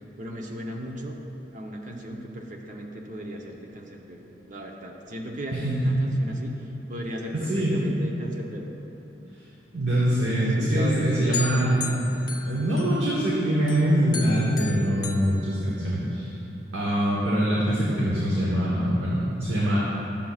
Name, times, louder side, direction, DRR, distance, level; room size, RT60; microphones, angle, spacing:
voice 1, 0.2-1.2 1.5-6.5 6.9-8.7 10.4-11.4, equal, 45° right, 1 dB, 0.7 m, -36 dB
voice 2, 5.5-6.3 7.5-7.8 9.7-11.8 12.1-12.2 12.4-16.3 16.7-19.8, equal, 85° right, -6 dB, 1.2 m, -24 dB
sound 1, 11.3-13.3 13.7-16.2, left 5 dB, 25° left, 0.7 m, -37 dB
11.5 x 7.1 x 2.4 m, 3.0 s
head